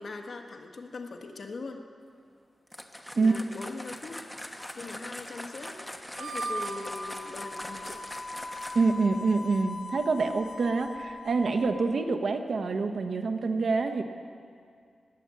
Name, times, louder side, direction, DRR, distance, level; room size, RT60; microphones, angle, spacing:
voice 1, 0.0-1.9 3.2-4.2 4.7-5.8 6.2-8.0, left 3 dB, 55° left, 4 dB, 1.4 m, -41 dB
sound 1, 2.7-9.0, left 1 dB, 5° left, 1.1 m, -42 dB
Harmonica, 6.1-11.8, equal, 85° right, 2.8 m, -39 dB
voice 2, 8.7-14.0, right 4 dB, 60° right, 7 dB, 1.0 m, -26 dB
20.0 x 8.7 x 7.6 m, 2.2 s
wide cardioid pair, 120°, 0 cm